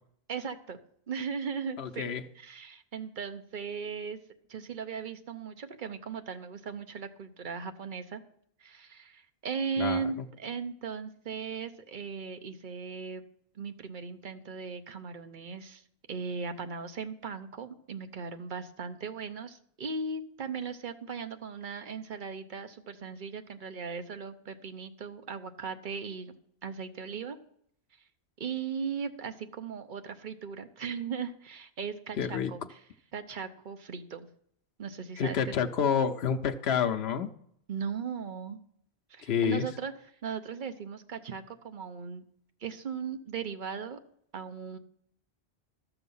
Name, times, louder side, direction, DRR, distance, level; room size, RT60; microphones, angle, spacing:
voice 1, 0.3-0.8 1.1-2.1 2.3-4.2 4.5-8.2 8.6-13.2 13.5-15.8 16.1-26.3 26.6-27.4 28.4-32.8 33.1-34.3 34.8-35.5 37.7-38.6 39.1-39.9 40.2-42.2 42.6-44.0 44.3-44.8, right 6 dB, 55° right, 8 dB, 1.0 m, -37 dB
voice 2, 1.8-2.2 9.8-10.0 32.2-32.5 35.2-37.3 39.2-39.7, left 7 dB, 85° left, 6 dB, 1.0 m, -28 dB
12.5 x 6.9 x 5.5 m, 0.69 s
omnidirectional pair, 1.0 m